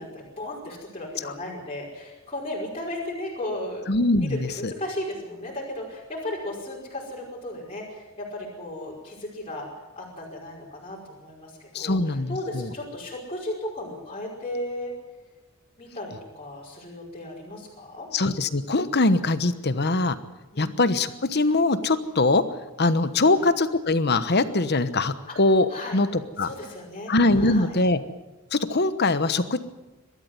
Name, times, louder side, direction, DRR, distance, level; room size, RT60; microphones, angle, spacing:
voice 1, 0.0-3.9 4.2-9.7 10.0-14.9 15.8-18.1 20.5-20.8 23.3-23.5 25.3-25.4 25.7-26.0 26.4-27.7, left 1 dB, 25° left, -5 dB, 5.2 m, -35 dB
voice 2, 3.9-4.7 11.7-12.7 18.1-20.2 20.6-22.4 22.8-26.5 27.1-28.0 28.5-29.6, left 2 dB, 50° left, 12 dB, 1.1 m, -22 dB
22.0 x 13.5 x 9.6 m, 1.1 s
head